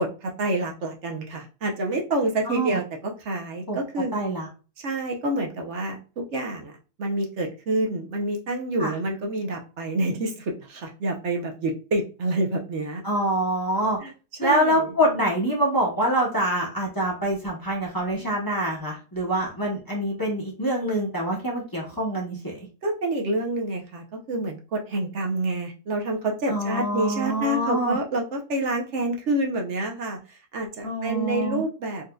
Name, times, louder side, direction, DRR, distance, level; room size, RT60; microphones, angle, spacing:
voice 1, 0.0-4.2 4.8-6.7 7.0-13.0 14.0-14.1 14.4-14.9 22.8-32.1, right 1 dB, 65° right, 2 dB, 1.0 m, -28 dB
voice 2, 2.4-2.8 3.7-3.8 4.1-4.5 8.8-8.9 13.0-14.0 14.4-22.7 26.5-28.0 30.8-31.6, right 1 dB, 20° left, -3 dB, 0.8 m, -25 dB
4.1 x 2.6 x 2.2 m, 0.34 s
omnidirectional pair, 1.3 m